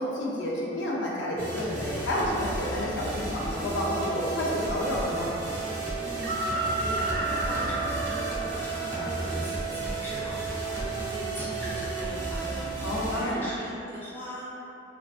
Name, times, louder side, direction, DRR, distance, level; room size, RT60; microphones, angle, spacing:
voice 1, 0.0-5.3 12.8-13.5, left 1 dB, 80° left, -4 dB, 0.4 m, -30 dB
sound 1, 1.4-13.2, right 1 dB, 45° right, 0.7 m, -35 dB
Chicken rooster, 3.5-11.8, right 1 dB, 60° right, 0.4 m, -35 dB
Wind instrument woodwind instrument, 3.7-13.1, right 13 dB, 45° left, 0.8 m, -36 dB
voice 2, 6.0-14.6, equal, 10° left, -9 dB, 0.5 m, -40 dB
2.3 x 2.3 x 2.3 m, 2.8 s
head